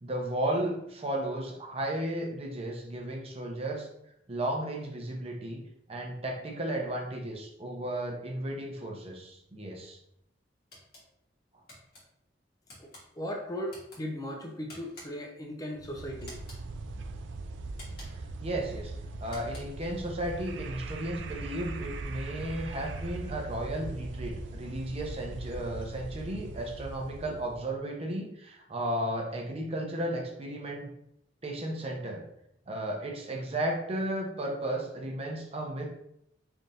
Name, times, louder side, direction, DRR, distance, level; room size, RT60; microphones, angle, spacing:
voice 1, 0.0-3.9 4.3-5.6 5.9-10.0 18.1-18.9 19.2-30.9 31.4-32.2 32.7-35.9, right 1 dB, 35° right, 1 dB, 0.7 m, -34 dB
sound 1, 10.7-11.1 11.7-12.0 12.7-13.0 13.7-14.0 14.7-15.3 16.2-16.6 17.7-18.3 19.2-19.8, left 1 dB, 55° left, 1.5 m, -50 dB
voice 2, 12.8-16.4, equal, 20° left, 1 dB, 0.5 m, -37 dB
sound 2, 15.8-27.7, right 2 dB, 85° right, 0.4 m, -40 dB
3.4 x 2.6 x 4.0 m, 0.76 s
head